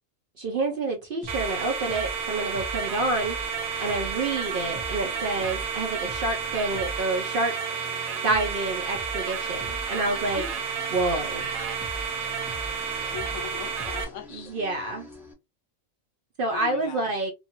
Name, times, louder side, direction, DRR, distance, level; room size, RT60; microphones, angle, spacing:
voice 1, 0.4-3.4 3.8-7.5 8.2-10.4 10.9-11.5 14.3-15.1 16.4-17.3, right 2 dB, 55° right, 0.6 m, -28 dB
sound 1, 1.2-15.3, right 1 dB, 5° right, 0.3 m, -42 dB
sound 2, 1.3-14.0, right 6 dB, 80° right, 1.2 m, -31 dB
voice 2, 13.1-14.5 16.5-17.2, left 8 dB, 70° left, 0.8 m, -39 dB
2.6 x 2.3 x 2.8 m
omnidirectional pair, 1.4 m